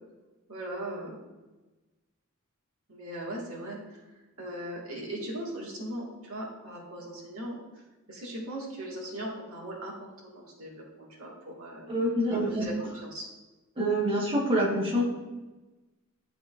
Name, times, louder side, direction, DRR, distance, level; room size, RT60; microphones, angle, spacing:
voice 1, 0.5-1.2 2.9-4.0 4.4-7.6 8.1-11.9 12.4-12.7 13.0-13.3, right 1 dB, 75° right, -3 dB, 1.7 m, -39 dB
voice 2, 11.9-12.9 13.8-15.0, right 1 dB, 25° right, -4 dB, 1.2 m, -26 dB
11.0 x 3.8 x 2.4 m, 1.1 s
head